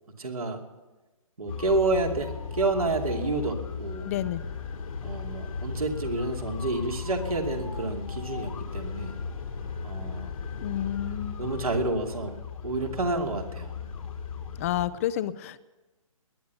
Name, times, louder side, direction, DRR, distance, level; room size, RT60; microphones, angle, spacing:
voice 1, 0.2-0.6 1.4-4.1 5.0-9.1 9.8-10.3 11.4-13.7, right 2 dB, 85° right, 2 dB, 2.7 m, -29 dB
sound 1, 1.5-14.9, left 5 dB, 70° left, 1.9 m, -36 dB
voice 2, 4.0-4.4 10.6-11.4 14.6-15.6, left 12 dB, 25° left, 15 dB, 0.4 m, -30 dB
20.0 x 10.5 x 7.0 m, 1.2 s
hypercardioid pair, 140°, 18 cm